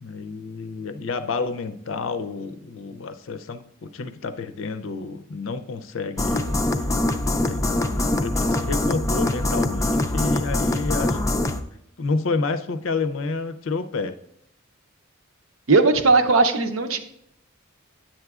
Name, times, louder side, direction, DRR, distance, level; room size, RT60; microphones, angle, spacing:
voice 1, 0.0-6.5 7.3-11.2 12.0-14.2, left 4 dB, 75° left, 10 dB, 0.5 m, -29 dB
sound 1, 6.2-11.6, left 1 dB, 15° left, 0.4 m, -23 dB
voice 2, 15.7-17.0, right 3 dB, 80° right, 7 dB, 0.7 m, -18 dB
10.0 x 7.8 x 2.4 m, 0.76 s
head